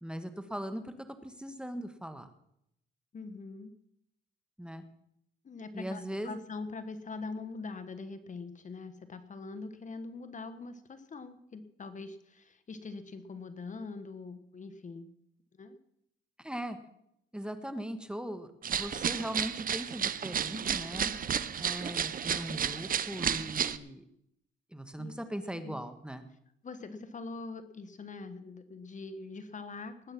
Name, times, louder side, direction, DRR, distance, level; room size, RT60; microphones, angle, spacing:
voice 1, 0.0-0.9 1.2-2.3 4.6-4.8 5.7-6.4 16.4-16.8 17.3-21.1 21.6-24.0 24.7-26.2, equal, 5° right, 9 dB, 1.5 m, -39 dB
voice 2, 3.1-3.7 5.4-15.1 15.6-15.8 20.9-21.3 25.0-25.2 25.5-25.7 26.6-30.1, left 4 dB, 40° left, 11 dB, 1.4 m, -43 dB
sound 1, 18.6-23.8, right 8 dB, 45° right, 0.8 m, -32 dB
19.5 x 8.8 x 6.0 m, 0.77 s
cardioid pair, 90°, 20 cm